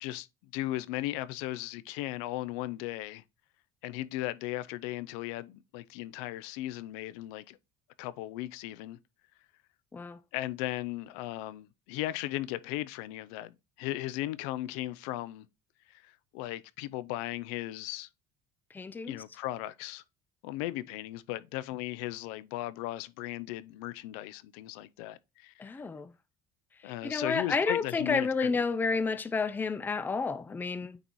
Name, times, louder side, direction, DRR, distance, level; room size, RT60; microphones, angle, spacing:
voice 1, 0.5-3.2 3.8-7.6 8.0-9.0 10.3-15.5 15.9-18.1 19.1-20.0 20.4-25.7 26.8-28.6, left 16 dB, 90° left, 0.4 m, -37 dB
voice 2, 18.7-19.2 25.6-26.1 26.8-31.0, left 4 dB, 10° left, 0.4 m, -31 dB
9.0 x 4.0 x 3.0 m
cardioid pair, 135°, 17 cm